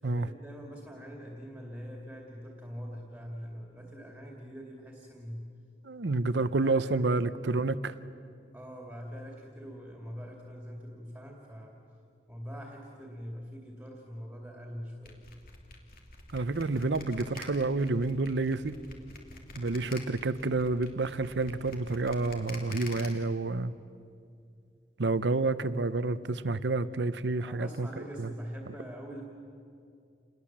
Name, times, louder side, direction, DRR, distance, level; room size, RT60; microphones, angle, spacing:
voice 1, 0.0-5.5 6.4-6.9 8.5-11.8 12.3-15.3 27.4-29.2, equal, 5° right, -1 dB, 2.5 m, -44 dB
voice 2, 5.8-7.9 16.3-18.8 19.5-23.7 25.0-27.9 28.2-28.3, right 3 dB, 80° right, 14 dB, 0.8 m, -29 dB
sound 1, 15.0-23.1, left 3 dB, 55° left, 2.7 m, -46 dB
28.5 x 20.0 x 7.4 m, 2.4 s
head